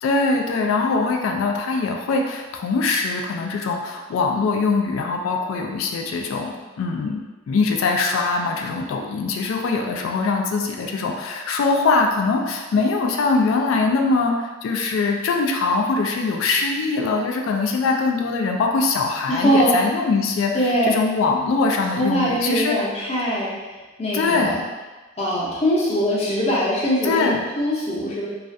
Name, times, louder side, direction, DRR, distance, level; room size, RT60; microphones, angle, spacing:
voice 1, 0.0-22.8 23.3-23.4 24.1-24.6 27.0-27.4, left 4 dB, 80° left, 3 dB, 0.3 m, -22 dB
voice 2, 19.3-19.8 20.5-21.0 22.0-23.5 24.0-24.6 25.2-28.3, equal, 30° left, -6 dB, 0.6 m, -22 dB
2.4 x 2.1 x 2.5 m, 1.2 s
head